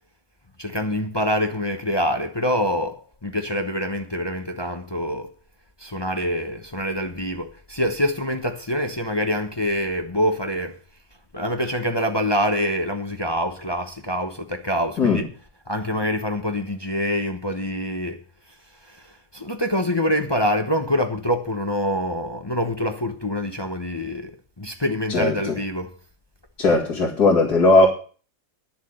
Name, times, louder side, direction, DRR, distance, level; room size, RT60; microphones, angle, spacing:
voice 1, 0.6-5.3 5.8-10.8 11.3-15.3 15.7-18.2 18.9-19.0 19.3-24.3 24.6-25.9, equal, 20° left, 0.8 m, -25 dB
voice 2, 25.1-25.6 26.6-27.9, left 2 dB, 70° left, 3.0 m, -18 dB
11.0 x 7.4 x 7.8 m
omnidirectional pair, 1.7 m